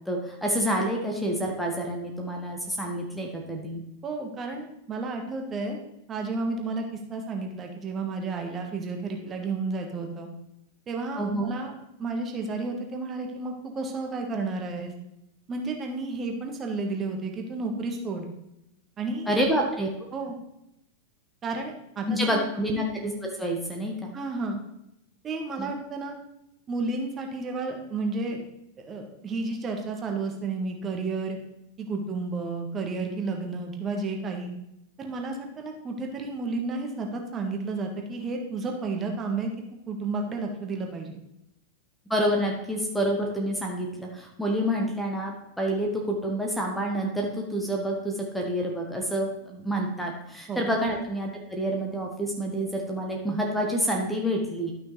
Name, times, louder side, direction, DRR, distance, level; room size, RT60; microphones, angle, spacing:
voice 1, 0.1-3.8 11.2-11.5 19.3-19.9 22.1-24.1 25.6-25.7 42.1-54.7, equal, ahead, 0 dB, 1.2 m, -28 dB
voice 2, 4.0-5.8 6.1-10.3 10.9-11.7 12.0-14.9 15.5-18.3 19.0-19.3 20.1-20.4 21.4-22.4 24.1-24.6 25.2-26.1 26.7-28.4 28.8-31.4 31.8-34.5 35.0-39.5 39.9-41.2 50.5-50.7, right 3 dB, 25° right, 2 dB, 1.5 m, -32 dB
12.0 x 6.0 x 3.2 m, 0.84 s
figure-of-eight pair, 90°, 0 cm